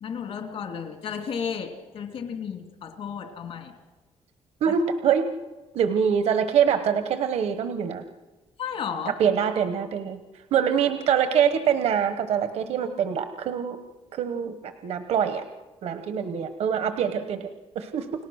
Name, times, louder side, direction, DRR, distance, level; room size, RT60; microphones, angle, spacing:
voice 1, 0.0-3.7 8.6-9.2, left 7 dB, 65° left, 5 dB, 2.7 m, -33 dB
voice 2, 4.6-5.3 5.7-8.0 9.1-10.2 10.5-13.8 14.1-15.4 15.8-17.5 17.7-18.1, right 8 dB, 75° right, 9 dB, 1.1 m, -24 dB
30.0 x 18.0 x 6.4 m, 1.2 s
cardioid pair, 140°, 11 cm